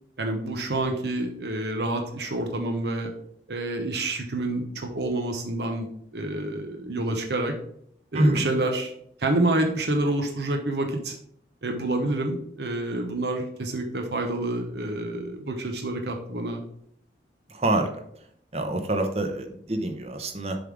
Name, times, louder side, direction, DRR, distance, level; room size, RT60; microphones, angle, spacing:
voice 1, 0.2-3.1 3.5-7.5 8.1-8.9 9.2-11.2 11.6-16.6, right 2 dB, 70° right, 3 dB, 0.9 m, -28 dB
voice 2, 8.1-8.4 17.5-17.9 18.5-20.6, right 1 dB, 35° right, 6 dB, 0.8 m, -25 dB
7.3 x 3.7 x 4.7 m, 0.68 s
head